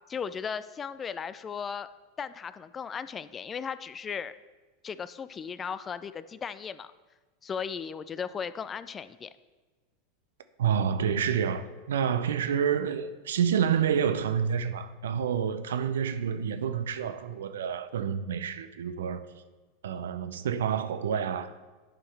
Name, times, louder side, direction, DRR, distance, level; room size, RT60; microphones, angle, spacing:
voice 1, 0.1-1.9 2.2-4.3 4.8-6.9 7.4-9.3, left 6 dB, 25° left, 0.3 m, -36 dB
voice 2, 10.6-19.3 19.8-21.5, right 8 dB, 75° right, 0.5 m, -28 dB
10.0 x 5.5 x 3.4 m
hypercardioid pair, 85°, 0 cm